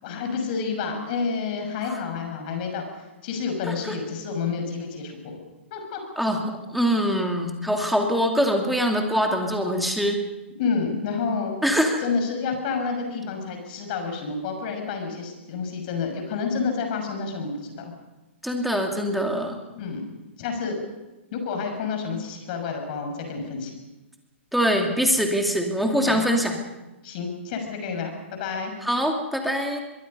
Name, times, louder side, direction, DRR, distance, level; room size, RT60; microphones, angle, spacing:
voice 1, 0.0-2.8 3.2-5.4 5.7-6.0 10.6-11.6 12.0-17.9 19.7-20.1 20.4-20.8 21.3-23.7 26.1-26.2 27.0-28.7, left 5 dB, 45° left, 4 dB, 6.4 m, -29 dB
voice 2, 3.7-4.0 6.2-10.2 11.6-12.0 18.4-19.6 24.5-26.6 28.8-29.8, equal, ahead, 2 dB, 2.5 m, -23 dB
25.0 x 22.5 x 5.5 m, 1.0 s
hypercardioid pair, 145°, 7 cm